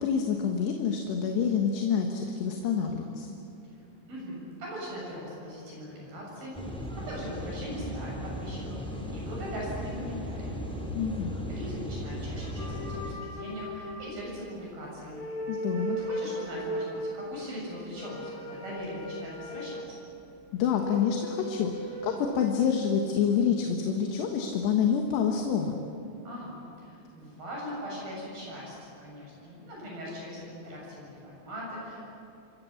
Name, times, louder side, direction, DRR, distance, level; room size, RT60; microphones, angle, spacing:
voice 1, 0.0-3.3 10.9-11.4 15.5-16.0 20.5-25.7, left 7 dB, 75° left, 2 dB, 3.6 m, -27 dB
voice 2, 4.1-6.6 7.0-10.6 11.5-15.3 16.0-20.0 26.2-32.1, equal, 55° right, -4 dB, 9.0 m, -40 dB
sound 1, 6.5-13.1, equal, ahead, 3.2 m, -36 dB
sound 2, 12.6-14.7 15.0-17.1 17.9-19.9 20.9-22.2, equal, 55° left, 7.9 m, -37 dB
28.5 x 23.5 x 7.3 m, 2.7 s
omnidirectional pair, 5.1 m